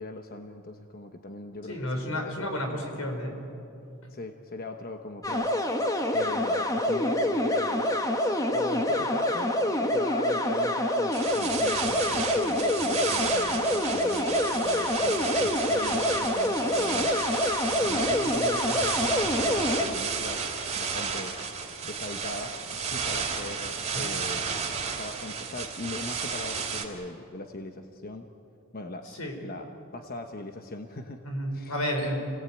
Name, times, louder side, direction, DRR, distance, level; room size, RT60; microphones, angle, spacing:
voice 1, 0.0-2.6 4.1-9.5 9.8-17.1 17.7-20.4 20.8-24.4 25.0-28.3 28.7-29.1 29.4-31.2 31.5-31.8, left 2 dB, 45° left, 5 dB, 1.1 m, -39 dB
voice 2, 1.7-3.4 23.9-24.1 29.2-29.3 31.2-32.2, equal, 85° left, 3 dB, 5.1 m, -31 dB
sound 1, 5.2-19.8, left 1 dB, 15° left, 1.6 m, -26 dB
sound 2, 11.1-26.8, right 5 dB, 30° right, 3.0 m, -32 dB
29.5 x 18.0 x 9.1 m, 2.8 s
head